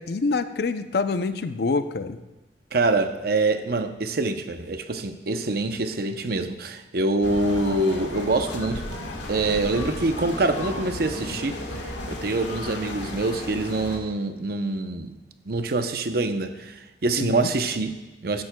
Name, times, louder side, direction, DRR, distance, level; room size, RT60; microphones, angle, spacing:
voice 1, 0.0-2.2 17.2-17.5, left 4 dB, 60° left, 11 dB, 0.5 m, -26 dB
voice 2, 2.7-8.9 9.3-11.6 12.1-15.1 15.5-18.4, right 2 dB, 60° right, 8 dB, 0.7 m, -25 dB
sound 1, 7.2-14.0, left 1 dB, 90° left, 1.5 m, -34 dB
15.0 x 10.5 x 2.2 m, 1.1 s
head